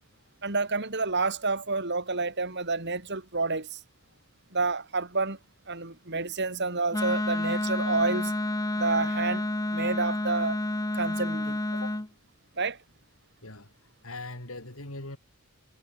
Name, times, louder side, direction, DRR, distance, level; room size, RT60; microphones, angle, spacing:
voice 1, 0.4-3.8 4.5-5.4 5.7-8.3 8.7-9.5 9.7-10.6 10.9-11.6 12.6-12.8, right 3 dB, 50° right, 4.3 m, -29 dB
Wind instrument woodwind instrument, 6.9-12.1, left 1 dB, 15° left, 0.7 m, -29 dB
voice 2, 11.7-12.0 13.4-13.7 14.0-15.2, left 2 dB, 70° left, 5.3 m, -40 dB
head